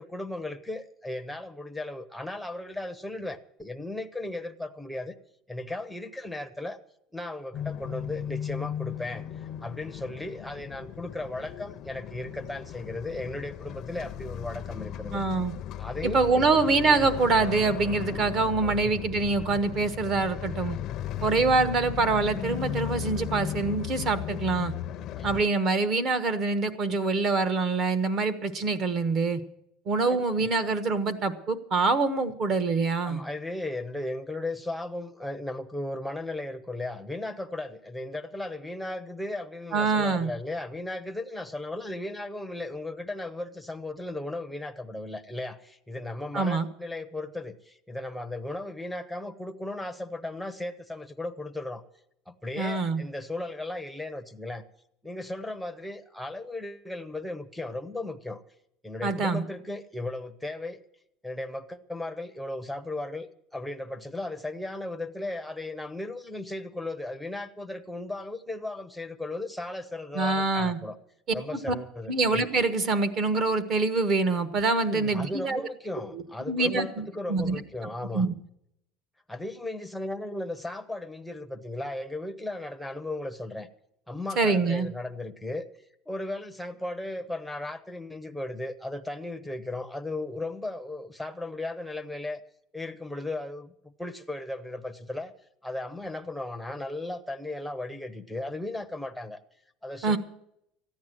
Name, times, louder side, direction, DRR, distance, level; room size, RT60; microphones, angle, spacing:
voice 1, 0.0-5.1 5.5-6.8 7.1-15.2 15.8-16.4 18.6-19.0 21.1-21.4 25.2-25.5 30.1-30.5 33.0-51.8 52.3-54.6 55.0-58.4 58.8-60.8 61.2-71.0 71.3-72.1 74.9-78.3 79.3-83.7 84.1-85.6 86.1-92.4 92.7-95.3 95.6-99.4 99.8-100.2, left 2 dB, ahead, 0.7 m, -36 dB
sound 1, 7.5-25.5, left 11 dB, 40° left, 0.6 m, -36 dB
voice 2, 15.1-15.5 16.0-20.8 21.2-24.7 25.2-29.4 29.9-33.2 39.7-40.3 46.3-46.7 52.6-53.0 59.0-59.4 70.1-70.8 71.7-71.8 72.1-75.6 76.1-77.6 78.1-78.3 84.4-84.9 100.0-100.2, right 3 dB, 35° right, 1.1 m, -25 dB
14.0 x 9.5 x 7.5 m
cardioid pair, 165°, 0 cm